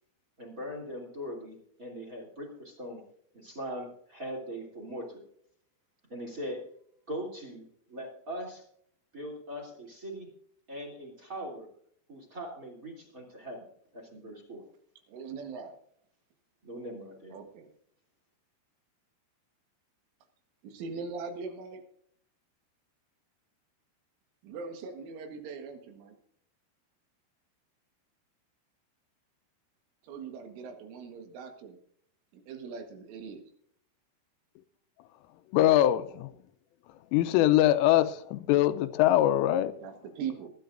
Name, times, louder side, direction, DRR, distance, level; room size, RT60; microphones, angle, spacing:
voice 1, 0.4-3.0 3.3-5.2 6.1-6.6 7.1-8.6 9.1-10.3 10.7-11.7 12.1-14.6 16.6-17.3, equal, 20° right, 2.4 m, -40 dB
voice 2, 15.1-15.8 17.3-17.7 20.6-21.8 24.4-26.2 30.0-31.8 32.3-33.4 39.8-40.5, right 5 dB, 80° right, 4.0 m, -40 dB
voice 3, 35.5-36.3 37.1-39.8, left 13 dB, 90° left, 3.3 m, -23 dB
22.0 x 11.0 x 2.6 m
omnidirectional pair, 5.6 m